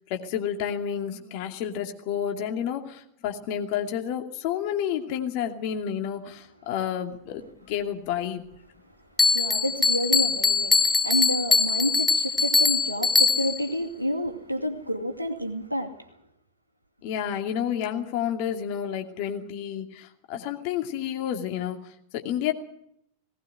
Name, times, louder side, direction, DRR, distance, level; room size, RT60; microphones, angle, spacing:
voice 1, 0.1-8.4 17.0-22.5, left 9 dB, 45° left, 4 dB, 2.5 m, -30 dB
Bell, 9.2-13.7, left 4 dB, 10° left, 1.1 m, -22 dB
voice 2, 9.3-16.1, equal, 85° right, 4 dB, 2.5 m, -29 dB
19.0 x 18.0 x 7.9 m, 0.76 s
figure-of-eight pair, 90°, 0 cm